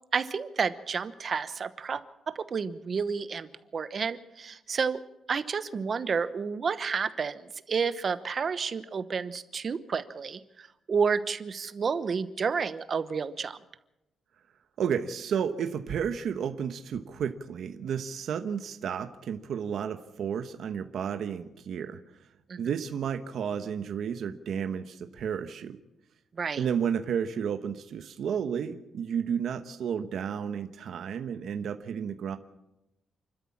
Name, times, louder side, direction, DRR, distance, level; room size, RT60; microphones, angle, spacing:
voice 1, 0.1-5.0 5.3-13.6 22.5-22.6 26.4-26.6, right 5 dB, 35° right, 13 dB, 1.0 m, -30 dB
voice 2, 14.8-22.0 22.6-25.8 26.6-32.4, right 7 dB, 60° right, 7 dB, 1.1 m, -32 dB
28.5 x 13.0 x 7.3 m, 0.93 s
cardioid pair, 150°, 0 cm